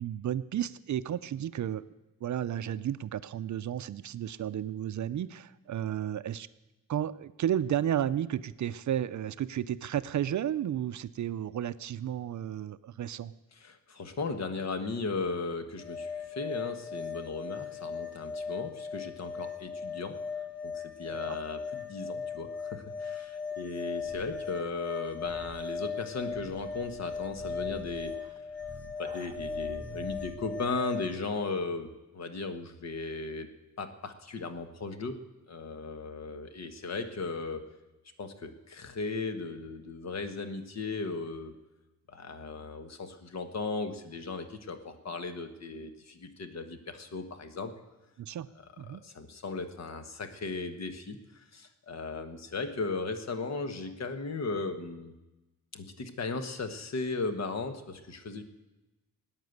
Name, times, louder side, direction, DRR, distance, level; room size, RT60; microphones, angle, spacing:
voice 1, 0.0-1.9 2.2-6.5 6.9-13.3 21.2-21.4 48.2-48.5 48.8-49.0, right 10 dB, 60° right, 15 dB, 0.5 m, -32 dB
voice 2, 13.6-20.2 20.6-28.2 29.0-35.2 35.5-37.7 38.2-41.5 42.1-47.7 48.9-55.1 55.7-58.4, left 3 dB, 50° left, 8 dB, 1.4 m, -36 dB
sound 1, 15.8-31.1, left 6 dB, 30° left, 1.5 m, -38 dB
sound 2, 24.0-30.9, right 4 dB, 20° right, 0.6 m, -49 dB
17.5 x 9.7 x 8.0 m, 1.1 s
wide cardioid pair, 145°, 34 cm